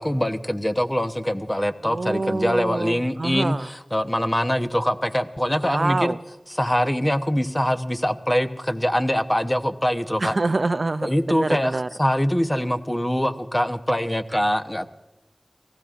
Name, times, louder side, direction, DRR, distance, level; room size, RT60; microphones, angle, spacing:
voice 1, 0.0-6.1 6.5-10.4 11.0-14.9, equal, 15° left, 6 dB, 0.9 m, -23 dB
voice 2, 1.8-3.7 5.6-6.2 10.2-11.9, right 3 dB, 65° right, 11 dB, 0.5 m, -26 dB
30.0 x 18.0 x 2.5 m, 1.0 s
wide cardioid pair, 55°, 0 cm